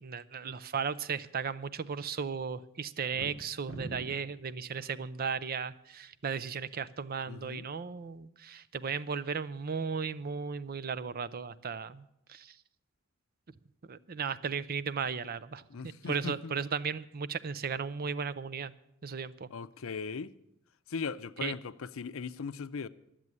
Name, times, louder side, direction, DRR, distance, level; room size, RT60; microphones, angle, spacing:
voice 1, 0.0-12.5 13.9-15.6 16.1-18.7 19.0-19.5 21.4-21.5, right 6 dB, 45° right, 0.5 m, -35 dB
sound 1, 3.0-4.3, right 2 dB, 75° right, 2.4 m, -43 dB
voice 2, 7.3-7.7 15.7-16.5 19.5-20.3 20.9-22.9, left 5 dB, 80° left, 0.5 m, -38 dB
12.0 x 7.6 x 9.5 m
head